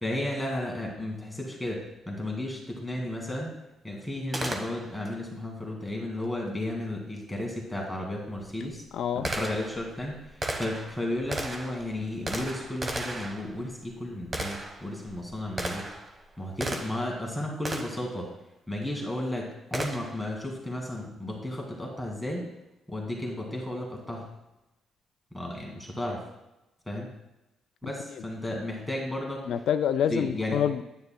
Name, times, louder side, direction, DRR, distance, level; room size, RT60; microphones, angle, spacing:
voice 1, 0.0-3.5 3.8-8.8 9.2-15.9 16.4-18.3 18.7-22.5 22.9-24.3 25.3-26.3 26.9-27.1 27.8-29.5 30.1-30.6, left 1 dB, 5° left, -1 dB, 2.1 m, -33 dB
Gunshot gunfire, 4.3-5.1 7.5-7.6 8.3-17.2 17.6-18.1 19.7-20.3, right 1 dB, 30° right, 1.2 m, -36 dB
voice 2, 8.9-9.3 29.5-30.8, left 9 dB, 70° left, 9 dB, 0.4 m, -26 dB
9.4 x 9.1 x 2.3 m, 0.94 s
cardioid pair, 90°, 0 cm